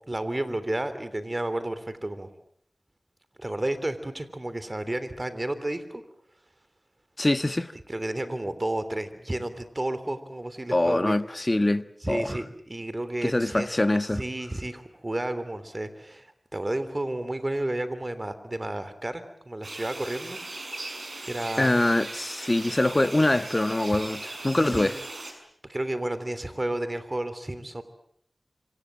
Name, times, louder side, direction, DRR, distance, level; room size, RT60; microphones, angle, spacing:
voice 1, 0.1-2.3 3.4-6.0 7.9-11.2 12.0-13.7 14.1-20.4 21.2-21.7 23.9-24.0 24.7-24.9 25.6-27.8, right 1 dB, 35° right, 3.3 m, -31 dB
voice 2, 7.2-7.7 10.7-12.3 13.2-14.2 21.6-24.9, left 1 dB, 35° left, 1.4 m, -24 dB
sound 1, 19.6-25.3, right 2 dB, 65° right, 6.2 m, -39 dB
26.5 x 26.0 x 7.6 m
wide cardioid pair, 50°, 0 cm